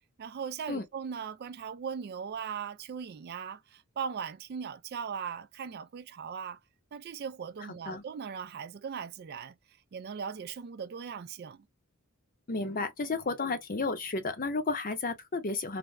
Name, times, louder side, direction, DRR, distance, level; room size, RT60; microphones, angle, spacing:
voice 1, 0.2-6.6 6.9-9.5 9.9-11.6, right 7 dB, 50° right, 0.3 m, -39 dB
voice 2, 12.5-15.8, left 3 dB, 40° left, 0.7 m, -32 dB
3.4 x 2.1 x 2.4 m
head